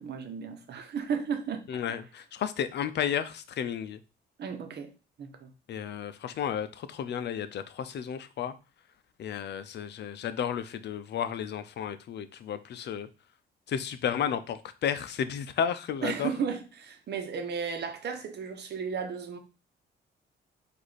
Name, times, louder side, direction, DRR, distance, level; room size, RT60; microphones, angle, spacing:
voice 1, 0.0-1.7 4.4-4.9 5.2-5.5 16.0-19.4, right 6 dB, 55° right, 1.0 m, -34 dB
voice 2, 1.7-4.0 5.7-8.5 9.2-13.1 13.7-16.3, left 8 dB, 60° left, 0.6 m, -32 dB
4.8 x 2.6 x 4.1 m
cardioid pair, 90°, 20 cm